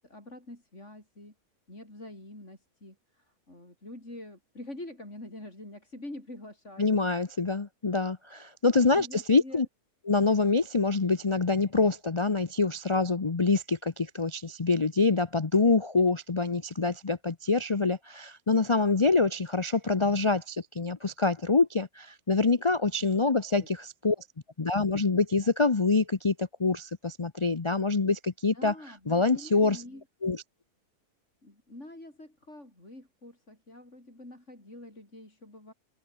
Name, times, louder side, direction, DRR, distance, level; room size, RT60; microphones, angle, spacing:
voice 1, 0.0-1.3 1.7-7.1 8.9-9.7 23.3-23.7 28.5-30.0 31.4-35.7, left 1 dB, 45° left, 7.5 m, -46 dB
voice 2, 6.8-9.7 10.1-24.2 24.6-28.7 29.1-29.8 30.2-30.4, left 3 dB, 30° left, 0.6 m, -26 dB
open air
omnidirectional pair, 1.7 m